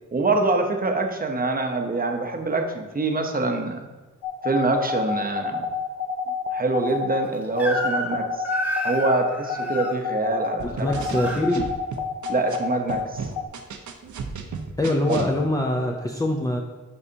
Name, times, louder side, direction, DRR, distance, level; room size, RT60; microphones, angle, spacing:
voice 1, 0.1-3.9 4.4-5.6 6.5-8.4 8.8-11.2 12.3-13.3 15.1-15.3, right 3 dB, 25° right, 4 dB, 0.8 m, -25 dB
sound 1, 4.2-13.5, left 6 dB, 85° left, 0.8 m, -28 dB
Crying sobbing / Screech, 7.6-8.2 8.4-9.9 10.8-11.4, equal, 5° right, 1.2 m, -29 dB
voice 2, 10.6-11.6 14.8-16.6, left 1 dB, 10° left, 0 dB, 0.6 m, -24 dB
sound 2, 10.6-12.6 12.9-15.3, right 5 dB, 65° right, 0.8 m, -34 dB
11.0 x 4.8 x 2.8 m, 1.2 s
wide cardioid pair, 120°, 32 cm